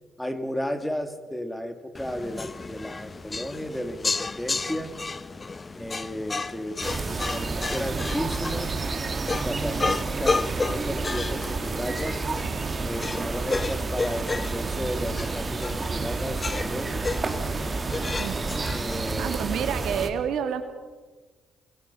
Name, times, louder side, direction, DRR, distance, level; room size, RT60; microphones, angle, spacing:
voice 1, 0.2-4.9 5.7-8.8 9.3-12.2 12.8-17.2 18.7-19.5, equal, 5° left, 8 dB, 2.5 m, -34 dB
sound 1, 1.9-19.1, left 3 dB, 30° left, 0.7 m, -33 dB
sound 2, 6.8-20.1, right 3 dB, 30° right, 2.2 m, -30 dB
voice 2, 19.0-20.6, right 8 dB, 80° right, 7 dB, 2.4 m, -29 dB
24.0 x 23.0 x 5.7 m, 1.3 s
cardioid pair, 90°, 0 cm